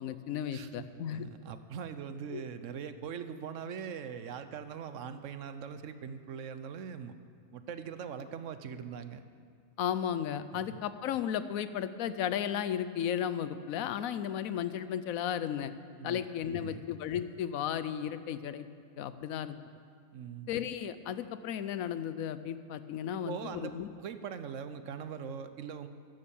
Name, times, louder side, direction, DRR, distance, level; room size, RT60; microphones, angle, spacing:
voice 1, 0.0-1.3 2.3-2.4 9.8-15.7 16.0-18.6 19.0-19.6 20.5-23.9, left 9 dB, 80° left, 13 dB, 1.1 m, -34 dB
voice 2, 0.5-7.1 7.5-9.2 10.5-10.8 16.0-16.2 16.5-16.8 20.1-20.5 23.1-25.9, right 7 dB, 65° right, 11 dB, 1.1 m, -42 dB
13.0 x 11.0 x 7.1 m, 2.1 s
omnidirectional pair, 1.4 m